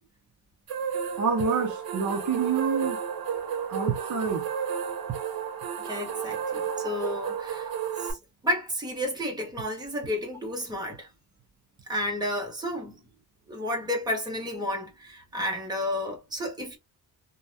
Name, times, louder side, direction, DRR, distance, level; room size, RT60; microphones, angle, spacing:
sound 1, 0.7-8.1, right 8 dB, 85° right, 1.0 m, -32 dB
voice 1, 1.2-3.0 3.7-4.5, right 5 dB, 55° right, 0.7 m, -27 dB
voice 2, 5.8-7.7 8.0-8.2 8.4-11.1 11.9-13.0 13.5-16.8, left 1 dB, 10° right, 0.9 m, -31 dB
3.3 x 2.2 x 2.7 m
cardioid pair, 160°, 35 cm